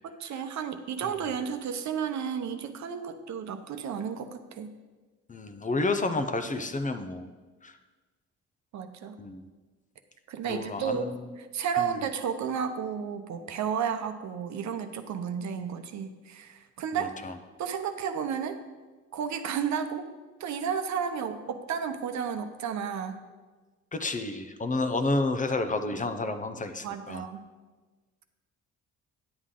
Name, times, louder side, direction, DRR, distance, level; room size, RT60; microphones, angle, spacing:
voice 1, 0.0-4.7 8.7-9.2 10.3-11.1 11.4-17.1 17.6-18.6 19.1-20.1 20.4-23.2 26.8-27.5, right 7 dB, 65° right, 7 dB, 0.8 m, -32 dB
voice 2, 5.3-7.3 7.6-7.7 9.2-9.5 10.4-11.2 11.8-12.0 16.9-17.3 23.9-27.3, left 2 dB, 25° left, 9 dB, 0.7 m, -30 dB
9.7 x 8.3 x 3.8 m, 1.3 s
cardioid pair, 90°, 30 cm